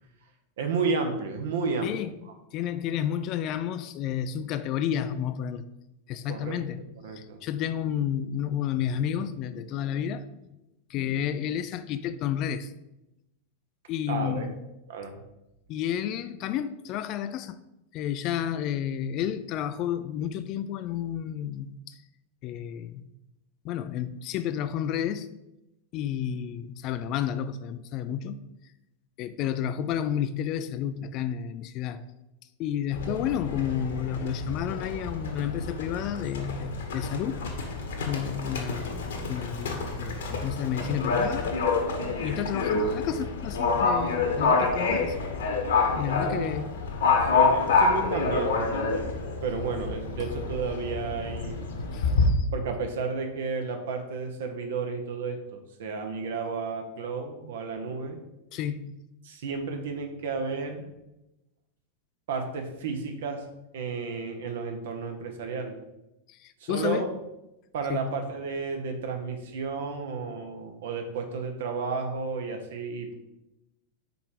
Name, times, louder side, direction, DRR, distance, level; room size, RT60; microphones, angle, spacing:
voice 1, 0.6-1.9 6.3-6.7 7.0-7.4 14.1-14.5 14.9-15.2 46.1-46.5 47.3-49.1 49.4-51.7 52.5-58.2 59.2-60.8 62.3-63.4 63.7-65.7 66.6-67.1 67.7-73.1, right 4 dB, 55° right, 1.0 m, -32 dB
voice 2, 1.8-2.1 2.5-5.7 6.1-6.8 7.1-10.3 10.9-12.7 13.9-14.6 15.7-17.6 17.9-22.0 22.4-23.0 23.6-25.3 25.9-28.4 29.2-32.0 32.6-37.5 38.1-41.5 42.2-45.2 46.0-46.8 51.9-52.5 58.5-58.9 66.3-67.1 67.9-68.1, left 9 dB, 40° left, 0.4 m, -31 dB
Livestock farm animals working animals, 32.9-52.3, left 4 dB, 60° left, 1.1 m, -28 dB
5.4 x 4.7 x 4.8 m
figure-of-eight pair, 90°, 0 cm